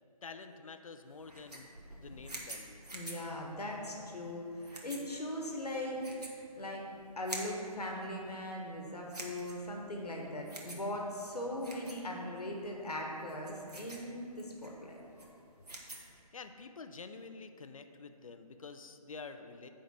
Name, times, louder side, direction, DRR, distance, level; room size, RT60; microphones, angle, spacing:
voice 1, 0.2-1.7 2.0-2.8 16.3-19.7, left 4 dB, 60° left, 8 dB, 0.6 m, -48 dB
sound 1, 1.1-16.2, right 2 dB, 80° right, 1.6 m, -49 dB
voice 2, 2.9-6.0 6.5-6.8 7.2-15.0, left 1 dB, 80° left, 0 dB, 1.5 m, -39 dB
9.6 x 3.8 x 6.5 m, 2.8 s
figure-of-eight pair, 155°, 20 cm